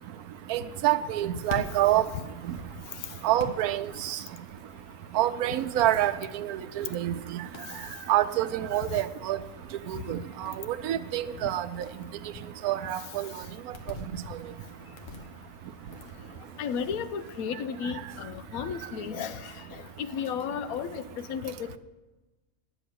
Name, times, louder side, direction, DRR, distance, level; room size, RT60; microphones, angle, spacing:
voice 1, 0.5-2.0 3.2-4.2 5.1-7.4 8.1-9.4 9.9-11.7 12.6-13.3, right 13 dB, 80° right, 12 dB, 1.1 m, -27 dB
sound 1, 1.0-17.5, left 3 dB, 60° left, 1.5 m, -47 dB
voice 2, 16.6-19.5 20.0-21.8, left 7 dB, 80° left, 13 dB, 1.0 m, -33 dB
10.0 x 6.9 x 9.2 m, 1.2 s
omnidirectional pair, 1.5 m